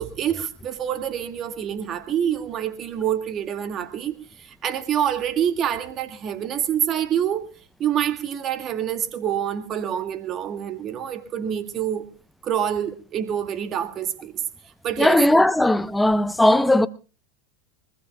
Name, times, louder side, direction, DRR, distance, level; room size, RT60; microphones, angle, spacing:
voice 1, 0.0-7.5 7.8-12.1 12.4-14.3 14.8-15.2, right 9 dB, 40° right, 2.1 m, -26 dB
voice 2, 15.0-16.9, left 1 dB, 5° left, 0.8 m, -18 dB
24.5 x 20.5 x 2.3 m
hypercardioid pair, 85°, 0 cm